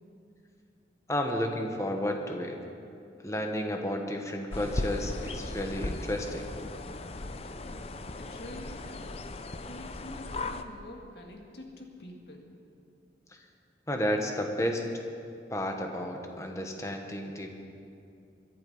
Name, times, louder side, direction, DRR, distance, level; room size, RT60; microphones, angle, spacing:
voice 1, 1.1-2.8 3.2-6.5 13.9-14.9 15.5-17.5, left 1 dB, 15° left, 3 dB, 1.3 m, -32 dB
sound 1, 4.5-10.6, left 2 dB, 35° left, 0.6 m, -37 dB
voice 2, 8.2-12.5, left 1 dB, 65° left, 1 dB, 2.2 m, -47 dB
22.0 x 11.5 x 5.5 m, 2.5 s
head